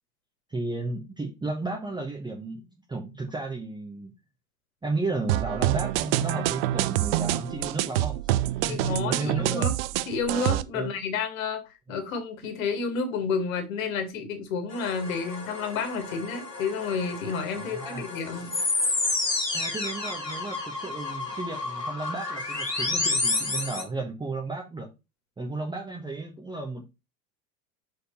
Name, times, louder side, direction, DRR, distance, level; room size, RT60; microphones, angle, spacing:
voice 1, 0.5-2.6 2.9-4.1 4.8-9.7 10.7-10.9 17.5-18.0 19.5-24.9 25.4-26.9, right 3 dB, 10° right, 1.2 m, -33 dB
sound 1, 5.3-10.6, right 14 dB, 40° right, 0.6 m, -26 dB
voice 2, 8.7-9.8 10.1-18.6, left 5 dB, 55° left, 2.4 m, -30 dB
sound 2, 14.7-23.8, left 3 dB, 90° left, 1.7 m, -30 dB
6.6 x 4.8 x 4.2 m
figure-of-eight pair, 80°, 47 cm